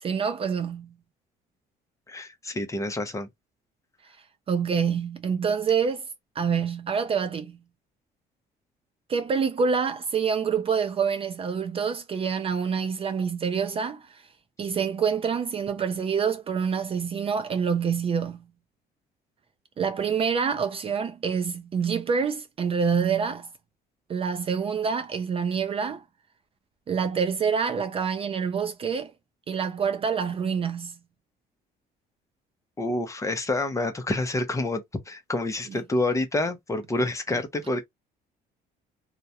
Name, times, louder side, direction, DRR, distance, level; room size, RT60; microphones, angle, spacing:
voice 1, 0.0-0.9 4.5-6.1 6.4-7.6 9.1-14.2 14.6-18.5 19.8-23.5 24.1-26.0 26.9-29.1 29.5-31.0 35.7-35.8, right 6 dB, 35° right, 0.4 m, -26 dB
voice 2, 2.1-3.3 32.8-37.9, left 2 dB, 20° left, 0.6 m, -28 dB
2.3 x 2.1 x 2.7 m
cardioid pair, 110°, 17 cm